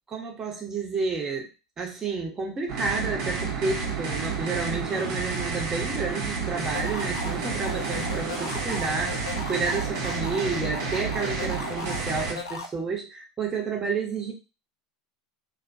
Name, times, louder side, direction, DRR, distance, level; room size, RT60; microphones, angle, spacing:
voice 1, 0.1-1.5 1.8-14.3, right 4 dB, 25° right, 0 dB, 1.0 m, -30 dB
sound 1, 2.7-12.3, right 5 dB, 55° right, 0.9 m, -30 dB
sound 2, 6.6-12.7, left 3 dB, 85° left, 0.4 m, -37 dB
2.5 x 2.2 x 2.6 m, 0.29 s
hypercardioid pair, 80°, 2 cm